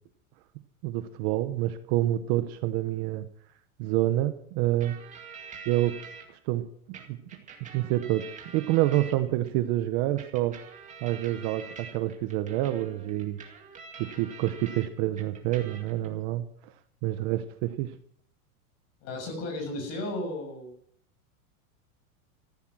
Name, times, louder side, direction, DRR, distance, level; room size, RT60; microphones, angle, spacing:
voice 1, 0.8-3.3 3.8-5.0 5.7-6.0 6.3-7.2 7.7-10.6 11.0-13.4 14.0-16.5 17.0-17.9, right 15 dB, 35° right, 10 dB, 0.9 m, -28 dB
sound 1, 4.8-6.3 6.9-9.5 10.2-14.9 15.2-16.1, right 5 dB, 15° right, 2.1 m, -46 dB
voice 2, 19.0-20.7, left 1 dB, 35° left, 5 dB, 6.7 m, -34 dB
14.5 x 13.0 x 6.2 m, 0.64 s
supercardioid pair, 155°, 43 cm